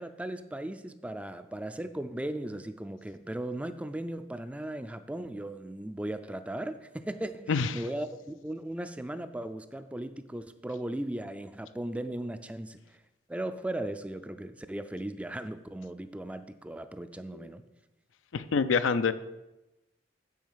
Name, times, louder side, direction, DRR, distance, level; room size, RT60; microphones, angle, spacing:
voice 1, 0.0-12.8 13.3-17.7, right 1 dB, 5° right, 0.4 m, -37 dB
voice 2, 18.3-19.1, left 5 dB, 85° left, 0.5 m, -25 dB
9.3 x 4.3 x 7.4 m
head